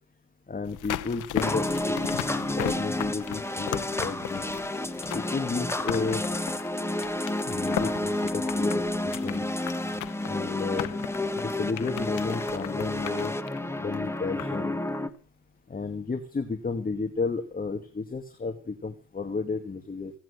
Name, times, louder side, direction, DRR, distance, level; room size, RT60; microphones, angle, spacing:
voice 1, 0.5-4.5 5.1-6.2 7.4-9.5 10.2-10.9 11.3-13.3 13.8-14.8 15.7-20.1, left 4 dB, 30° left, 6 dB, 2.2 m, -32 dB
sound 1, 0.6-14.7 14.9-15.0, left 15 dB, 85° left, 0.9 m, -37 dB
sound 2, 1.4-15.1, left 1 dB, 10° left, 1.4 m, -30 dB
17.0 x 9.0 x 8.6 m, 0.39 s
cardioid pair, 90°, 30 cm